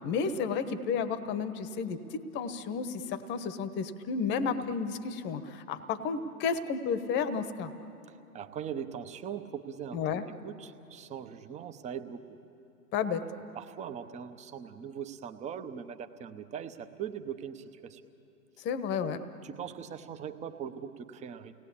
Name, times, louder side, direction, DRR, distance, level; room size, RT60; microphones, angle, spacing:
voice 1, 0.0-7.7 9.9-10.3 12.9-13.2 18.6-19.2, left 6 dB, 25° left, 12 dB, 1.1 m, -32 dB
voice 2, 8.3-12.2 13.2-18.0 19.4-21.5, right 8 dB, 15° right, 9 dB, 0.8 m, -41 dB
29.5 x 19.0 x 8.6 m, 3.0 s
hypercardioid pair, 120°, 46 cm